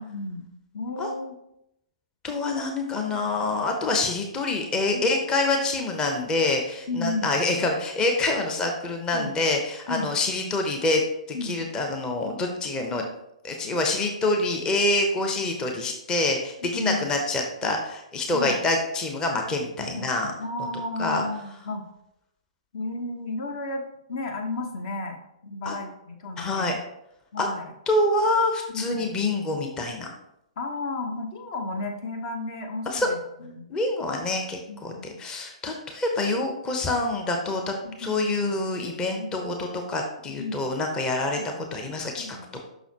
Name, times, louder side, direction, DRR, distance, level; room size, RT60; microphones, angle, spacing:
voice 1, 0.1-0.5 0.7-1.4 4.9-5.0 6.9-7.3 9.1-9.3 9.9-10.2 11.3-11.7 16.7-17.1 18.3-18.6 19.9-20.1 20.4-21.8 22.7-23.8 24.1-25.2 25.4-26.7 27.3-27.7 28.7-29.1 30.6-33.7 34.7-35.1 37.8-38.4 39.0-39.3 40.3-40.7 41.4-41.5 42.2-42.5, left 2 dB, 50° left, 4 dB, 0.9 m, -33 dB
voice 2, 2.2-13.0 13.4-20.3 21.0-21.2 25.6-25.7 26.4-26.7 27.4-27.5 27.9-30.1 32.9-33.1 33.7-42.4, left 2 dB, 20° left, 2 dB, 0.8 m, -26 dB
6.1 x 5.8 x 2.8 m, 0.82 s
figure-of-eight pair, 115°, 4 cm